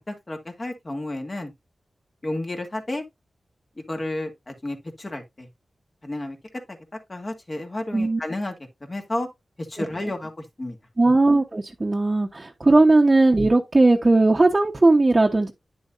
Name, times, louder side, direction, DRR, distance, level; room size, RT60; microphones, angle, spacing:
voice 1, 0.1-1.5 2.2-3.0 3.9-5.5 6.0-6.4 6.7-6.8 7.1-8.5 8.8-9.3 9.6-10.8, left 1 dB, 35° left, 2.5 m, -31 dB
voice 2, 11.0-15.5, right 2 dB, 35° right, 1.1 m, -18 dB
9.6 x 7.0 x 2.6 m
cardioid pair, 60°, 0 cm